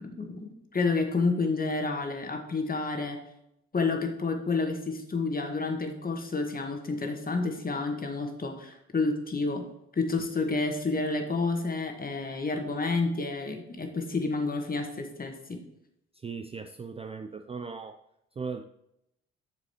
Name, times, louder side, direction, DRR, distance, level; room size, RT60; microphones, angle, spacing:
voice 1, 0.0-3.2 3.7-9.6 9.9-15.6, left 3 dB, 25° left, 4 dB, 1.6 m, -30 dB
voice 2, 16.1-18.0 18.4-18.6, right 5 dB, 20° right, 7 dB, 0.5 m, -38 dB
9.9 x 6.9 x 3.0 m, 0.81 s
figure-of-eight pair, 40°, 34 cm